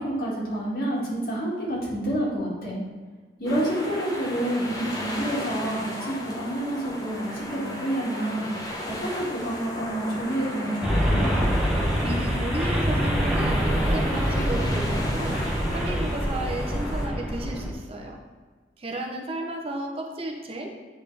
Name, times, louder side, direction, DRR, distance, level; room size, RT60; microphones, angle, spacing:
voice 1, 0.0-2.8 3.4-8.5 9.0-11.2, right 1 dB, 60° left, -5 dB, 2.0 m, -28 dB
sound 1, 3.5-17.1, left 1 dB, 20° left, 0.9 m, -35 dB
sound 2, 10.8-17.7, equal, 5° right, 1.0 m, -25 dB
voice 2, 12.0-15.4 15.7-18.2 18.8-20.7, right 1 dB, 35° right, 0 dB, 0.7 m, -33 dB
8.7 x 4.1 x 3.3 m, 1.4 s
head